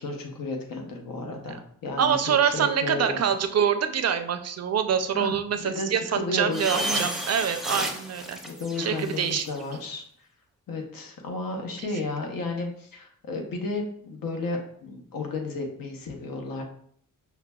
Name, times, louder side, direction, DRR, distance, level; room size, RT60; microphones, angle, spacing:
voice 1, 0.0-2.1 2.4-3.2 5.1-7.1 8.5-10.0 10.7-16.6, left 2 dB, 75° left, 2 dB, 0.8 m, -33 dB
voice 2, 2.0-8.4 8.8-9.5 11.8-11.9, right 8 dB, 50° right, 8 dB, 0.4 m, -25 dB
sound 1, 6.5-9.6, right 1 dB, ahead, 0.5 m, -32 dB
5.6 x 2.2 x 2.2 m, 0.62 s
wide cardioid pair, 95°, 34 cm